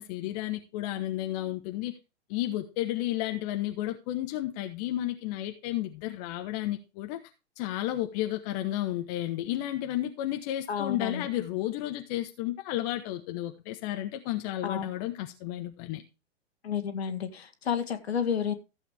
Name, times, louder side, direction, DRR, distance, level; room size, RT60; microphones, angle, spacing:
voice 1, 0.0-1.9 2.3-7.2 7.6-16.0, left 14 dB, 35° left, 5 dB, 1.2 m, -32 dB
voice 2, 10.7-11.3 14.6-14.9 16.6-18.5, left 7 dB, 60° left, 9 dB, 1.9 m, -31 dB
15.0 x 7.9 x 3.3 m, 0.29 s
figure-of-eight pair, 105°, 35 cm